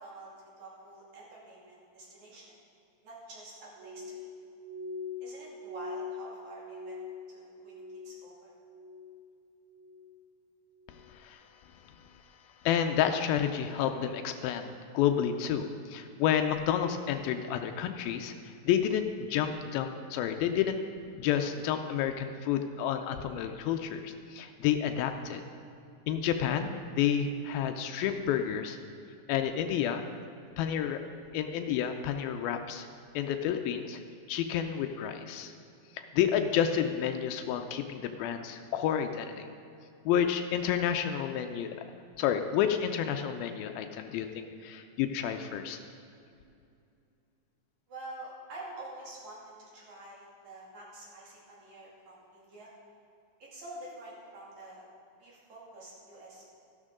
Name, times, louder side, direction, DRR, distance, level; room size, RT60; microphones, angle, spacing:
voice 1, 0.0-2.5 3.0-4.3 5.2-7.0 7.3-8.5 47.9-52.7 53.4-54.9 55.2-56.5, right 2 dB, 55° right, -6 dB, 3.9 m, -47 dB
Glass, 3.8-8.4 8.6-9.3 9.7-10.2 10.8-11.1, left 4 dB, 85° right, 1.7 m, -43 dB
voice 2, 11.1-11.4 12.7-18.3 18.7-20.8 21.2-25.4 26.1-28.8 29.3-30.1 30.6-31.0 31.3-32.9 33.1-34.0 34.3-35.5 36.0-39.5 40.1-41.7 42.2-45.8, left 9 dB, 85° left, 6 dB, 2.4 m, -30 dB
14.0 x 11.5 x 3.7 m, 2.6 s
omnidirectional pair, 4.2 m